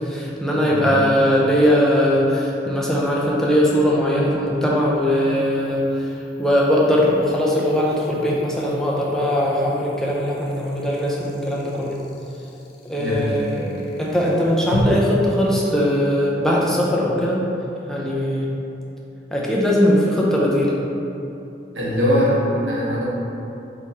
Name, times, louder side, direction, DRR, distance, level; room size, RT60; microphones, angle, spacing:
voice 1, 0.0-6.1 6.4-11.9 12.8-13.6 14.0-17.4 17.9-18.5 19.3-20.8, equal, 5° left, -5 dB, 0.5 m, -20 dB
voice 2, 0.6-1.0 13.0-13.8 21.7-23.0, equal, 80° right, -6 dB, 1.0 m, -22 dB
sound 1, 1.2-1.3 4.7-14.8, left 4 dB, 55° left, 0.4 m, -41 dB
3.9 x 3.1 x 4.0 m, 2.8 s
head